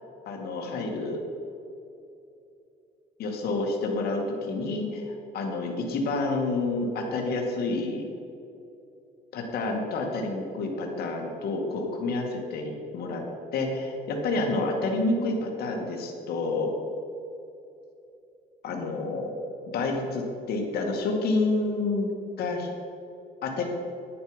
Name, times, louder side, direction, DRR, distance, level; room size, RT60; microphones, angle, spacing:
voice 1, 0.3-1.2 3.2-8.1 9.3-13.2 13.5-16.7 18.6-19.3 19.7-22.1 22.4-22.7 23.4-23.7, left 3 dB, 65° left, 1 dB, 2.1 m, -29 dB
11.0 x 9.6 x 5.2 m, 2.7 s
cardioid pair, 110°, 17 cm